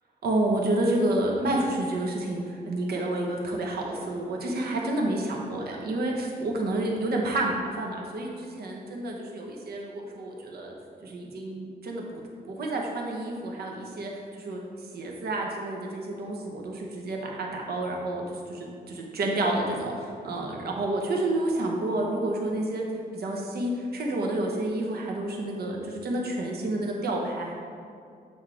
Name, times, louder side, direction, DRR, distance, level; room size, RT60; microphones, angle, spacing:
voice 1, 0.2-10.7 11.0-12.2 12.5-22.9 23.1-27.5, right 1 dB, 70° right, 0 dB, 1.0 m, -29 dB
7.4 x 2.8 x 4.8 m, 2.4 s
cardioid pair, 110°, 17 cm